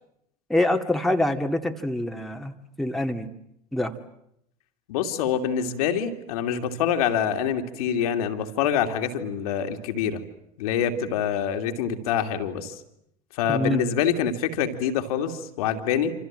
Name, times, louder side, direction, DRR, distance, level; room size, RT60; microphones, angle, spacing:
voice 1, 0.5-3.3 3.7-3.9 13.5-13.9, left 1 dB, ahead, 4 dB, 2.2 m, -25 dB
voice 2, 4.9-10.2 10.6-12.8 13.3-16.1, left 8 dB, 60° left, 6 dB, 2.8 m, -25 dB
27.5 x 27.0 x 7.7 m, 0.77 s
figure-of-eight pair, 75°, 21 cm